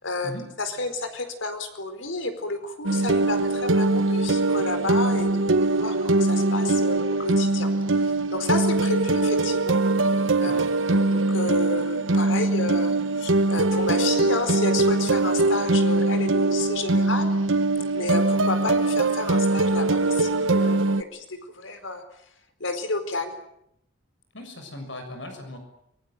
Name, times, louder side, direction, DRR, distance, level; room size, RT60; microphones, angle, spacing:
voice 1, 0.0-0.3 0.6-7.7 7.9-9.8 10.4-10.5 10.9-17.3 17.9-20.8 21.1-22.0 22.6-23.3, left 3 dB, 85° left, 8 dB, 4.5 m, -31 dB
sound 1, 2.8-21.0, right 2 dB, 90° right, 1.1 m, -22 dB
voice 2, 24.3-25.6, left 1 dB, 70° left, 6 dB, 6.8 m, -38 dB
24.0 x 23.0 x 9.3 m, 0.76 s
head